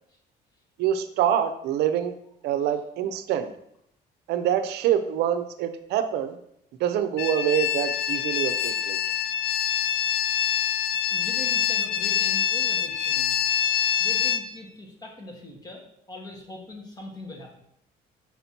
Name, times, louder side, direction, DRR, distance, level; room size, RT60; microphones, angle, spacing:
voice 1, 0.8-2.1 2.4-3.5 4.3-6.4 6.8-9.0, right 10 dB, 80° right, 9 dB, 0.5 m, -25 dB
sound 1, 7.2-14.4, left 9 dB, 70° left, 0.5 m, -25 dB
voice 2, 10.2-10.6 11.1-13.4 14.0-17.6, left 1 dB, 25° left, -1 dB, 1.6 m, -42 dB
5.9 x 5.6 x 2.9 m, 0.74 s
cardioid pair, 110°, 17 cm